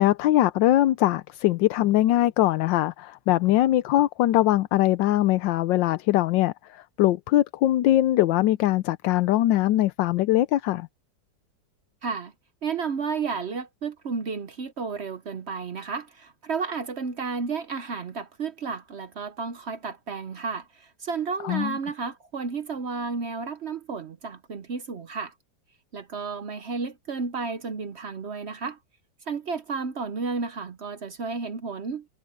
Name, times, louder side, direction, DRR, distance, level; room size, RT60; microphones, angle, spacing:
voice 1, 0.0-10.9 21.4-21.8, left 14 dB, 85° left, 1.3 m, -22 dB
voice 2, 12.0-12.3 12.6-25.3 25.9-28.8 29.3-32.1, right 5 dB, 50° right, 0.8 m, -32 dB
omnidirectional pair, 2.0 m